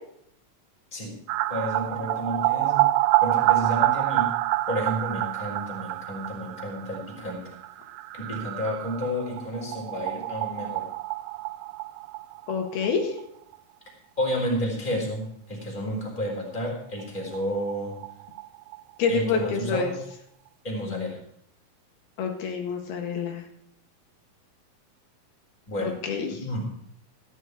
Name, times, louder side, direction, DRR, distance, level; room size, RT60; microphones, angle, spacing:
sound 1, 1.3-12.9 13.2-13.3 13.5-13.6 16.7-16.8 17.0-17.1 17.3-19.1 19.4-19.5, right 17 dB, 90° right, 2.5 m, -27 dB
voice 1, 1.5-2.9 3.2-4.3 4.7-7.5 8.1-10.9 14.2-18.0 19.1-20.0 20.6-21.2 25.7-26.0 26.4-26.7, equal, 10° left, -2 dB, 3.1 m, -31 dB
voice 2, 12.5-13.2 19.0-19.9 20.9-21.1 22.2-23.4 25.8-26.3, left 5 dB, 80° left, 2 dB, 3.6 m, -27 dB
14.0 x 10.0 x 4.7 m, 0.70 s
omnidirectional pair, 4.3 m